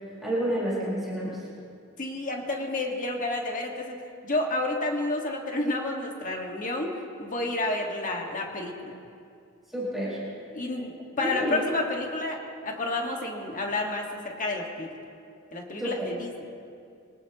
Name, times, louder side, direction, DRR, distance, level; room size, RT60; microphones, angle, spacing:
voice 1, 0.2-1.4 9.7-10.2 11.2-11.6 15.8-16.1, right 1 dB, ahead, -9 dB, 5.0 m, -29 dB
voice 2, 2.0-6.9 7.2-8.9 10.5-10.9 11.2-12.4 12.6-14.9 15.5-16.3, left 2 dB, 40° left, 1 dB, 1.7 m, -30 dB
24.0 x 19.0 x 3.0 m, 2.4 s
head